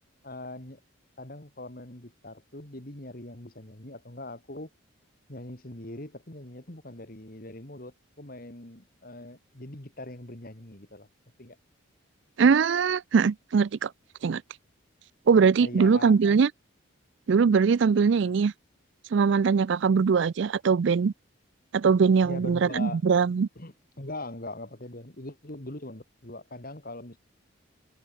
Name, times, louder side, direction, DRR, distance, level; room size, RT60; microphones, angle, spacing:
voice 1, 0.2-0.8 1.2-4.7 5.3-11.1 11.4-11.6 15.6-16.4 22.2-23.0 23.6-27.2, left 2 dB, 45° left, 2.3 m, -41 dB
voice 2, 12.4-13.9 14.2-14.4 15.3-16.5 17.3-18.5 19.1-21.1 21.7-23.5, right 5 dB, 60° right, 0.4 m, -21 dB
head